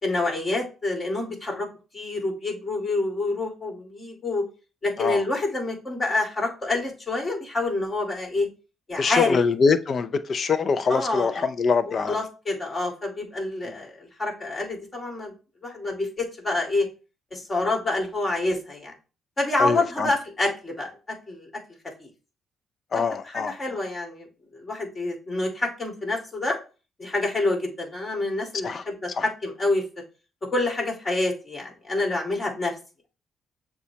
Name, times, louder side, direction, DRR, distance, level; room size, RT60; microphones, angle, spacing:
voice 1, 0.0-1.7 1.9-4.4 4.8-8.5 8.9-9.4 10.9-11.5 11.9-15.3 15.6-16.9 17.3-18.9 19.4-20.9 21.3-21.5 22.0-22.1 23.2-24.3 24.5-26.6 27.0-29.9 30.5-32.7, left 2 dB, 30° left, 2.0 m, -27 dB
voice 2, 9.0-12.2 19.6-20.1 22.9-23.6 28.6-29.3, left 5 dB, 50° left, 0.4 m, -24 dB
6.8 x 2.3 x 2.8 m
cardioid pair, 90°, 0 cm